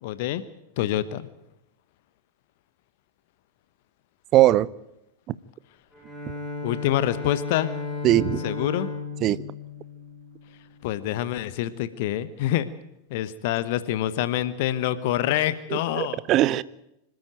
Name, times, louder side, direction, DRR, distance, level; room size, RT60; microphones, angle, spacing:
voice 1, 0.0-0.4 0.8-1.3 6.6-7.7 8.4-8.9 10.8-12.7 13.1-16.2, left 13 dB, 50° left, 1.1 m, -26 dB
voice 2, 4.3-4.7 8.0-8.4 9.2-9.4 15.9-16.6, right 14 dB, 35° right, 0.7 m, -19 dB
Bowed string instrument, 5.9-10.9, left 4 dB, 5° left, 7.7 m, -34 dB
26.0 x 13.0 x 9.2 m
figure-of-eight pair, 90°, 0 cm